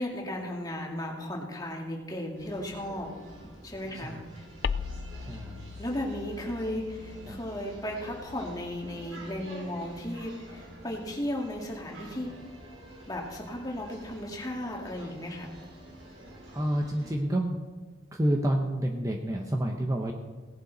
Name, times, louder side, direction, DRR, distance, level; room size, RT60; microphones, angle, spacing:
voice 1, 0.0-3.1 3.6-4.4 5.8-12.3 13.1-15.5, left 1 dB, 20° left, -1 dB, 2.0 m, -35 dB
sound 1, 2.4-17.1, right 1 dB, 85° right, 4.0 m, -48 dB
sound 2, 4.6-9.5, left 6 dB, 55° left, 0.3 m, -39 dB
voice 2, 5.3-5.8 7.3-7.4 15.0-15.1 16.5-17.6 18.1-20.1, right 1 dB, 15° right, 1 dB, 0.8 m, -29 dB
17.5 x 11.0 x 4.0 m, 1.4 s
head